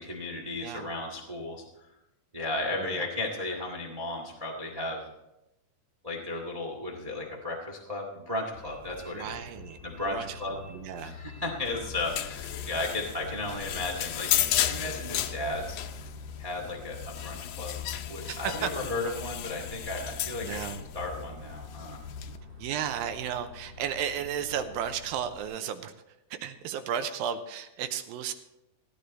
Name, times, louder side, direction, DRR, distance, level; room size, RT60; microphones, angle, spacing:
voice 1, 0.0-1.6 2.3-5.1 6.0-9.4 9.8-10.6 11.0-15.8 16.4-17.8 18.1-20.7 20.9-22.0, left 2 dB, 60° right, 0 dB, 0.3 m, -34 dB
Bus, 8.5-25.4, left 4 dB, 10° right, 1.0 m, -48 dB
voice 2, 9.1-9.8 10.1-11.2 18.2-18.7 20.4-20.8 22.6-25.9 26.3-28.3, right 9 dB, 80° right, 9 dB, 2.4 m, -34 dB
sound 1, 11.7-22.4, left 11 dB, 75° left, 2.3 m, -34 dB
16.5 x 10.5 x 4.1 m, 0.92 s
omnidirectional pair, 4.2 m